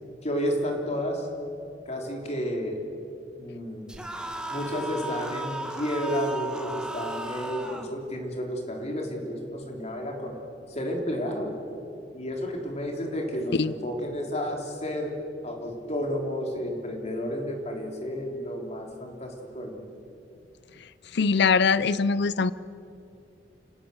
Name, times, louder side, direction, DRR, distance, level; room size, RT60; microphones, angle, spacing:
voice 1, 0.2-1.3 1.9-2.8 3.4-4.1 4.5-10.3 10.7-11.6 12.1-19.9, equal, 35° left, 2 dB, 3.6 m, -31 dB
sound 1, 3.9-7.9, right 1 dB, 5° right, 1.6 m, -35 dB
voice 2, 21.1-22.5, left 5 dB, 65° left, 17 dB, 0.6 m, -22 dB
29.5 x 17.0 x 7.0 m, 2.6 s
head